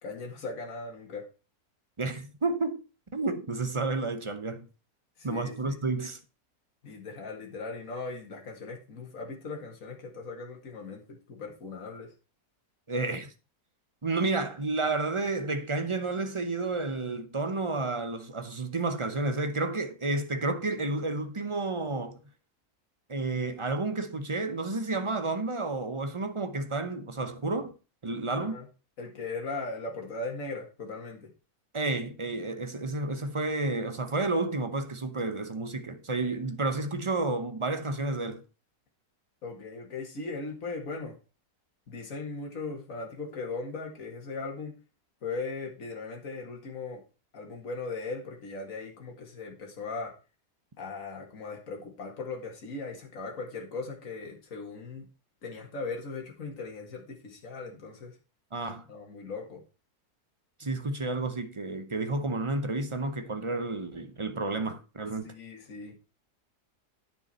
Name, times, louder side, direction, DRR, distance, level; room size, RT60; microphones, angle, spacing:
voice 1, 0.0-1.3 5.2-5.8 6.8-12.1 28.3-28.7 29.0-31.3 39.4-41.2 41.9-44.8 45.2-47.0 47.3-50.1 50.8-55.1 55.4-58.2 58.9-59.6 65.2-66.0, left 3 dB, 60° left, 2.3 m, -38 dB
voice 2, 2.0-2.8 3.1-4.7 5.2-6.2 12.9-13.3 14.0-22.2 23.1-27.7 28.0-28.6 31.7-38.4 58.5-58.8 60.6-65.3, right 3 dB, 25° right, 0.7 m, -31 dB
9.3 x 7.0 x 4.3 m
omnidirectional pair, 1.6 m